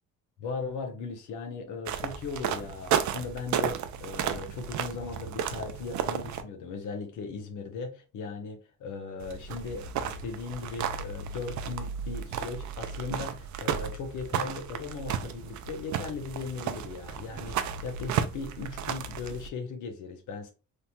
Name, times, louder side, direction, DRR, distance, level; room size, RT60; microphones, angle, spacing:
voice 1, 0.4-20.5, left 4 dB, 85° left, 0.8 m, -38 dB
sound 1, 1.9-6.4 9.2-19.5, right 8 dB, 70° right, 0.5 m, -33 dB
3.2 x 2.1 x 2.7 m
cardioid pair, 90°, 30 cm